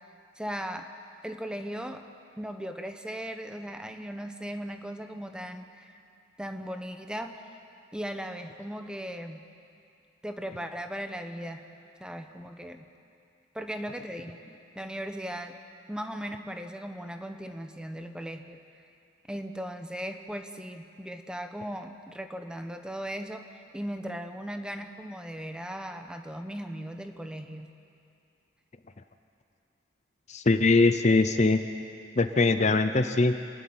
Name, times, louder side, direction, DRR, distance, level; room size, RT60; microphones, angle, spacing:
voice 1, 0.4-0.9 1.2-2.0 2.4-6.0 6.4-7.3 7.9-9.4 10.2-11.6 12.0-12.9 13.5-15.5 15.9-18.6 19.3-27.7, equal, 5° right, 6 dB, 0.9 m, -37 dB
voice 2, 30.3-31.6 32.2-33.3, left 3 dB, 35° left, 9 dB, 0.6 m, -22 dB
27.5 x 11.5 x 8.8 m, 2.5 s
head